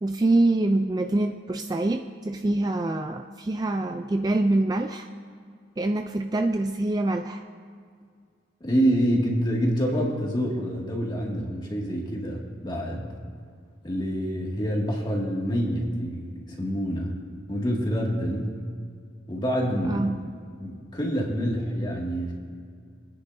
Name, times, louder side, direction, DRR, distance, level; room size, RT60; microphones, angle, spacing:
voice 1, 0.0-5.1 5.8-7.4 19.8-20.2, right 2 dB, 20° right, 6 dB, 0.3 m, -25 dB
voice 2, 8.6-13.1 13.8-17.1 17.5-18.6 19.3-20.1 20.6-22.3, equal, 25° left, -2 dB, 2.1 m, -27 dB
28.0 x 9.9 x 2.7 m, 2.2 s
head